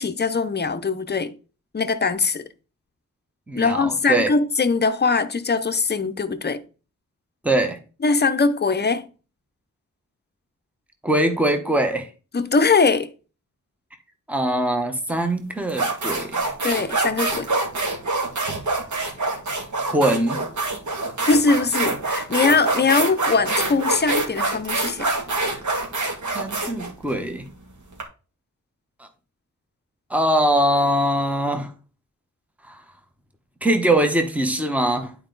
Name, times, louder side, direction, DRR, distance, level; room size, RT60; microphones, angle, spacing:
voice 1, 0.0-1.3 1.7-2.4 3.6-6.6 8.0-9.1 12.3-13.1 16.6-17.5 21.2-25.1, left 4 dB, 35° left, 0.7 m, -21 dB
voice 2, 3.5-4.3 7.4-7.8 11.0-12.1 14.3-16.5 19.9-20.4 26.3-27.4 29.0-29.1 30.1-31.7 32.7-32.8 33.6-35.1, right 1 dB, 5° right, 1.1 m, -22 dB
sound 1, 15.1-15.2 15.7-28.0, right 2 dB, 65° right, 2.3 m, -25 dB
11.0 x 4.6 x 3.9 m
wide cardioid pair, 150°, 31 cm